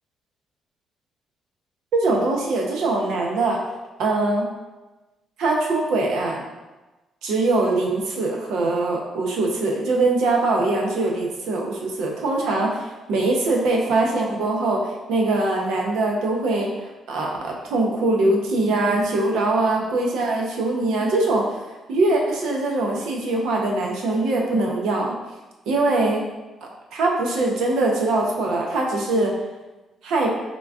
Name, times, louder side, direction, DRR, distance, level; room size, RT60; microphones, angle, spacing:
voice 1, 1.9-3.6 4.0-4.5 5.4-6.4 7.2-21.6 21.9-25.1 25.7-26.2 26.9-29.3 30.0-30.3, right 2 dB, 85° right, 0 dB, 0.6 m, -22 dB
3.8 x 2.3 x 3.5 m, 1.1 s
cardioid pair, 90°, 0 cm